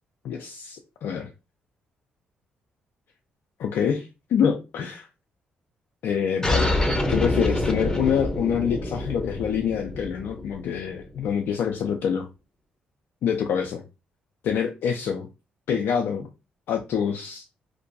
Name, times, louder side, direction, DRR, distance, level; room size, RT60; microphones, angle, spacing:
voice 1, 0.2-1.3 3.6-5.1 6.0-6.7 7.1-12.3 13.2-13.8 14.4-15.3 15.7-16.3 16.7-17.4, left 7 dB, 70° left, 3 dB, 0.3 m, -26 dB
sound 1, 6.4-11.5, left 1 dB, 15° left, 0.7 m, -26 dB
2.6 x 2.2 x 2.6 m, 0.29 s
hypercardioid pair, 50°, 4 cm